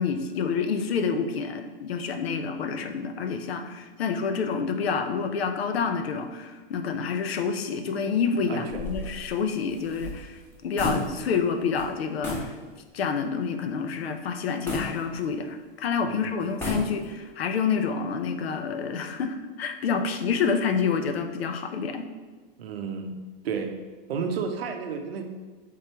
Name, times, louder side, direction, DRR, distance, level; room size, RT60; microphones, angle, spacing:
voice 1, 0.0-12.5 12.9-22.0, left 5 dB, 90° left, 7 dB, 0.6 m, -28 dB
voice 2, 8.5-8.8 16.0-16.5 22.6-23.2 23.4-23.8 24.1-25.2, right 6 dB, 85° right, 5 dB, 0.7 m, -32 dB
sound 1, 8.7-11.5 11.7-11.9 12.2-12.5 13.0-13.1 14.7-15.7 16.4-17.3, left 2 dB, 10° left, 0.9 m, -33 dB
3.8 x 3.2 x 4.3 m, 1.4 s
hypercardioid pair, 140°, 30 cm